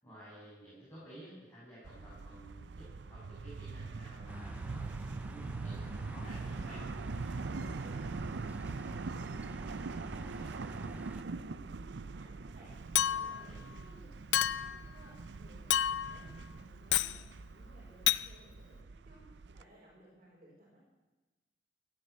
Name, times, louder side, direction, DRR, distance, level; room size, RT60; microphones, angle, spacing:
voice 1, 0.0-4.8 5.3-6.9 13.0-13.7, right 1 dB, 15° left, -10 dB, 7.4 m, -53 dB
sound 1, 1.8-19.6, right 4 dB, 85° right, 0.5 m, -43 dB
sound 2, 4.3-11.2, right 1 dB, 10° right, 0.4 m, -47 dB
voice 2, 7.6-20.8, right 1 dB, 40° right, -6 dB, 4.9 m, -60 dB
Chink clink, 13.0-13.5 14.3-14.8 15.7-16.2 16.9-17.2 18.1-18.3, left 12 dB, 90° left, 0.4 m, -29 dB
17.0 x 9.8 x 8.2 m, 1.2 s
head